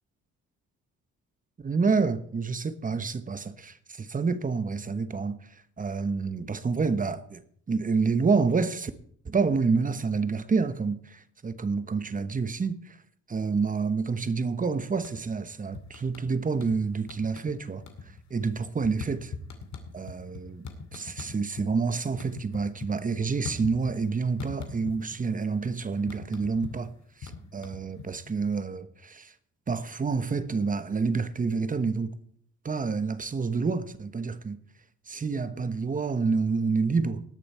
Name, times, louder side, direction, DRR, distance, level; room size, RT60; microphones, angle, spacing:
voice 1, 1.6-5.4 5.8-7.4 7.7-8.9 9.2-13.0 13.3-17.8 18.3-19.3 19.9-26.9 27.2-29.3 29.7-32.1 32.6-34.6 35.1-37.2, right 4 dB, 25° right, 1.1 m, -28 dB
sound 1, 14.9-15.4 15.7-16.8 17.1-17.6 17.8-21.7 22.0-24.1 24.4-25.3 25.5-28.4, left 5 dB, 65° left, 2.4 m, -41 dB
19.0 x 6.9 x 4.5 m
cardioid pair, 90°, 30 cm